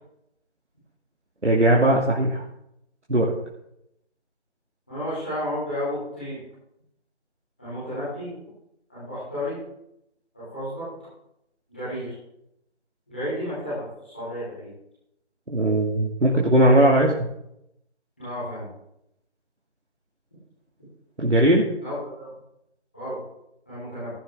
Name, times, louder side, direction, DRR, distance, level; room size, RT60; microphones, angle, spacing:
voice 1, 1.4-2.4 3.1-3.3 15.5-17.3 21.2-21.6, right 1 dB, 85° right, -2 dB, 2.5 m, -19 dB
voice 2, 4.9-6.4 7.6-8.3 8.9-9.6 10.3-10.8 11.7-12.1 13.1-14.7 18.2-18.7 21.8-22.3 22.9-23.2 23.7-24.1, left 1 dB, 10° left, -15 dB, 4.7 m, -32 dB
16.0 x 11.5 x 3.8 m, 0.79 s
figure-of-eight pair, 180°, 34 cm